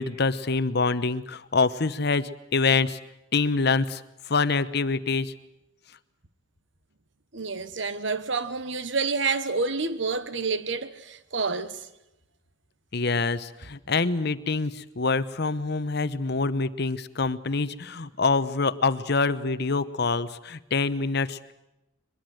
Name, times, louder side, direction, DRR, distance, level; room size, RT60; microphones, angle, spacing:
voice 1, 0.0-3.0 3.3-4.0 4.3-5.3 12.9-21.5, left 4 dB, 55° left, 1.0 m, -25 dB
voice 2, 7.3-11.9, right 4 dB, 65° right, 1.2 m, -28 dB
23.0 x 22.0 x 7.9 m
head